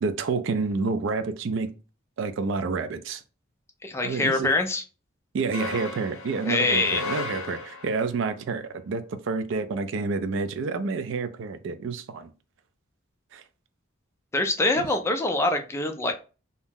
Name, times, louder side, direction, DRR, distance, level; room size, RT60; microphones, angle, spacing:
voice 1, 0.0-1.7 2.2-3.2 4.0-4.5 5.3-12.3 13.3-13.4 14.8-14.9, right 4 dB, 60° right, 0.4 m, -29 dB
voice 2, 3.8-4.8 6.4-7.0 14.3-16.1, left 2 dB, 15° left, 0.3 m, -24 dB
sound 1, 5.5-8.1, left 3 dB, 80° left, 0.6 m, -35 dB
2.7 x 2.0 x 3.5 m
head